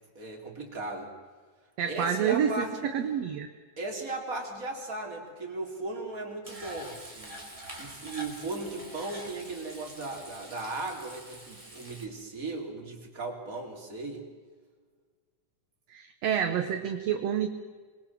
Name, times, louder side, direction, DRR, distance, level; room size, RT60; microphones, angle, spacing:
voice 1, 0.2-1.1 1.9-2.8 3.8-7.4 7.8-14.2, right 2 dB, 25° right, 1 dB, 4.1 m, -37 dB
voice 2, 1.8-3.5 15.9-17.5, right 8 dB, 60° right, 7 dB, 2.1 m, -28 dB
Frying (food), 6.4-12.1, right 1 dB, 10° right, 4.2 m, -45 dB
26.5 x 21.5 x 7.6 m, 1.5 s
omnidirectional pair, 3.7 m